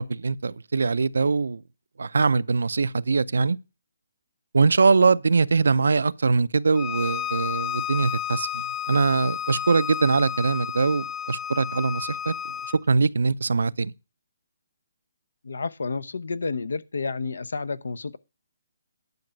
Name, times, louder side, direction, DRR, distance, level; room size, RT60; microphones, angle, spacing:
voice 1, 0.0-1.6 2.0-3.6 4.5-12.3 12.9-13.9, right 4 dB, 80° right, 0.5 m, -22 dB
Bowed string instrument, 6.7-12.8, left 9 dB, 10° left, 0.4 m, -32 dB
voice 2, 15.4-18.2, left 4 dB, 80° left, 0.8 m, -30 dB
10.5 x 5.9 x 5.2 m
hypercardioid pair, 155°, 0 cm